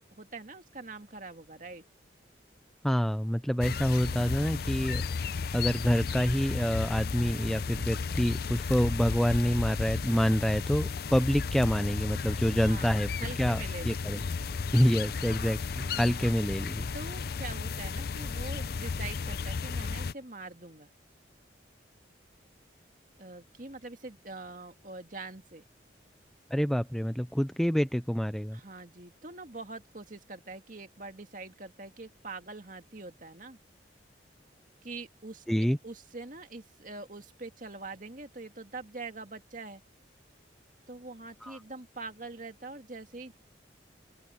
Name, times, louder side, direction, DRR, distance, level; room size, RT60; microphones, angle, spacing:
voice 1, 0.0-1.8 12.6-14.0 15.8-16.3 16.9-20.9 23.2-25.6 28.5-33.6 34.8-35.4 35.8-39.8 40.9-43.3, right 3 dB, 45° right, 2.1 m, -44 dB
voice 2, 2.8-5.0 5.5-13.1 13.4-14.2 14.7-16.9 26.5-28.6 35.5-35.8 41.4-41.6, equal, ahead, 0.4 m, -27 dB
sound 1, 3.6-20.1, left 5 dB, 55° left, 0.5 m, -34 dB
open air
head